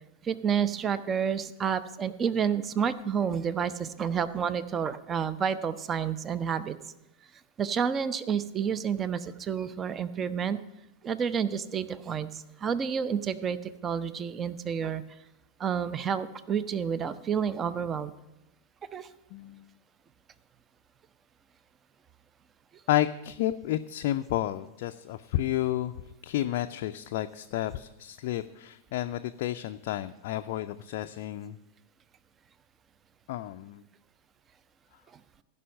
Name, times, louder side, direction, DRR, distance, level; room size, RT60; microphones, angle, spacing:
voice 1, 0.2-6.8 7.6-10.6 11.0-15.0 15.6-18.1 18.9-19.1, right 7 dB, 25° right, 15 dB, 0.5 m, -30 dB
voice 2, 19.3-19.7 22.9-31.6 33.3-33.8, left 14 dB, 50° left, 7 dB, 0.4 m, -31 dB
15.5 x 5.5 x 6.3 m, 0.92 s
figure-of-eight pair, 90°, 0 cm